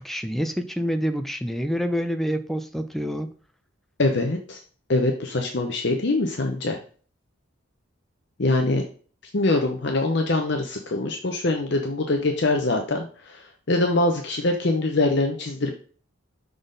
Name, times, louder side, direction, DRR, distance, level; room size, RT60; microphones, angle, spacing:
voice 1, 0.0-3.3, equal, ahead, 7 dB, 0.5 m, -27 dB
voice 2, 4.0-4.6 4.9-6.8 8.4-8.8 9.3-15.7, left 2 dB, 55° left, 3 dB, 0.8 m, -23 dB
6.0 x 4.0 x 5.1 m, 0.42 s
head